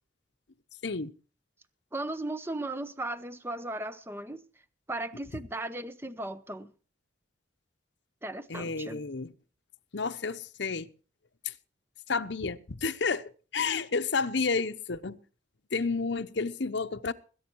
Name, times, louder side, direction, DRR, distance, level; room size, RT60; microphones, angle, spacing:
voice 1, 1.9-4.4 4.9-6.7 8.2-9.0, right 2 dB, 10° right, 0.8 m, -36 dB
voice 2, 8.5-9.3 9.9-10.9 11.4-11.5 12.1-15.2 15.7-17.1, left 4 dB, 65° left, 0.8 m, -31 dB
21.0 x 9.5 x 4.6 m
head